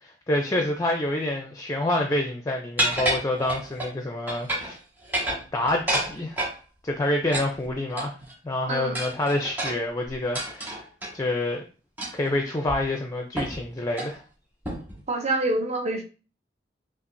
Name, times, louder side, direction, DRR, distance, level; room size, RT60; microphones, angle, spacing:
voice 1, 0.0-4.8 5.5-6.4 6.8-8.1 8.4-10.8 11.1-11.6 12.1-14.2, left 1 dB, 20° left, 0.5 m, -27 dB
sound 1, 2.8-3.9 4.3-4.8 5.0-6.6 7.3-8.3 8.9-11.1 12.0-12.3 12.7-12.8 13.4-13.6 13.9-14.1 14.6-15.0, right 1 dB, 10° right, 1.6 m, -29 dB
voice 2, 15.1-16.0, right 2 dB, 40° right, 0.8 m, -26 dB
5.6 x 2.4 x 2.6 m
head